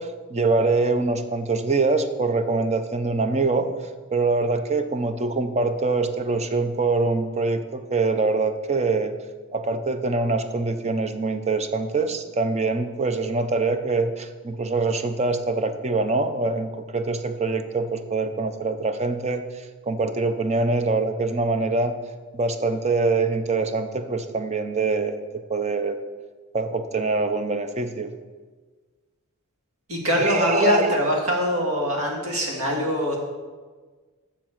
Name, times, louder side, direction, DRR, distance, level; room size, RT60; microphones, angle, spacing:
voice 1, 0.0-3.7 4.1-9.1 9.5-22.0 22.3-26.0 26.5-28.1 30.2-31.0 32.0-32.1, right 3 dB, 30° right, 8 dB, 0.7 m, -24 dB
voice 2, 29.9-33.2, equal, 70° right, -1 dB, 2.3 m, -23 dB
7.4 x 7.1 x 7.4 m, 1.4 s
head